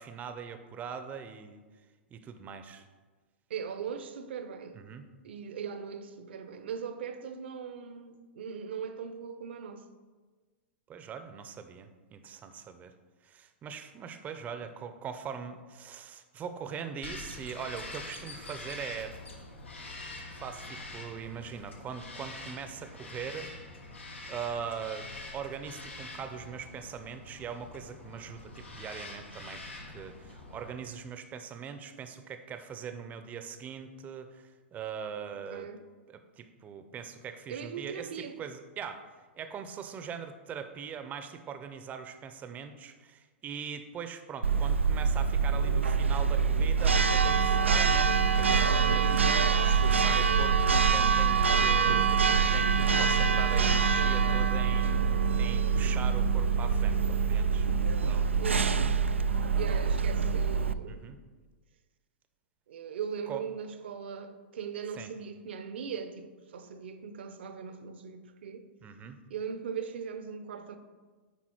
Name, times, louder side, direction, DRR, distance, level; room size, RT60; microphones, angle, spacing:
voice 1, 0.0-1.6 2.1-2.9 4.7-5.1 10.9-12.9 13.2-19.2 20.3-23.5 24.3-25.1 25.3-29.6 29.9-35.7 36.1-39.0 39.3-58.3 60.9-61.2 63.3-63.4 64.9-65.1 68.8-69.2, right 7 dB, 25° right, 0.7 m, -41 dB
voice 2, 3.5-4.8 5.2-9.8 35.5-35.8 37.5-38.4 58.4-58.8 59.6-61.1 62.7-68.7 69.3-70.8, right 7 dB, 65° right, 0.8 m, -39 dB
Bird vocalization bird call bird song, 17.0-30.7, left 2 dB, 80° left, 1.4 m, -45 dB
Church bell, 44.4-60.7, right 5 dB, 85° right, 0.3 m, -25 dB
9.8 x 4.3 x 4.5 m
figure-of-eight pair, 105°, 6 cm